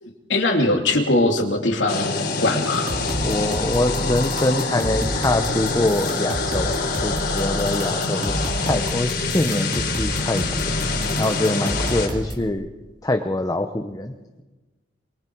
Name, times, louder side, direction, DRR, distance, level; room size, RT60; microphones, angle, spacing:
voice 1, 0.0-2.1 2.4-2.9, left 2 dB, 85° left, 3 dB, 2.7 m, -21 dB
sound 1, 1.9-12.1, left 3 dB, 65° left, 3.5 m, -25 dB
sound 2, 2.7-12.5, equal, 45° right, 2.8 m, -31 dB
voice 2, 3.2-6.7 7.0-10.7 11.2-12.7 13.0-14.4, left 1 dB, 20° left, 5 dB, 0.9 m, -24 dB
27.5 x 23.5 x 4.7 m, 1.2 s
head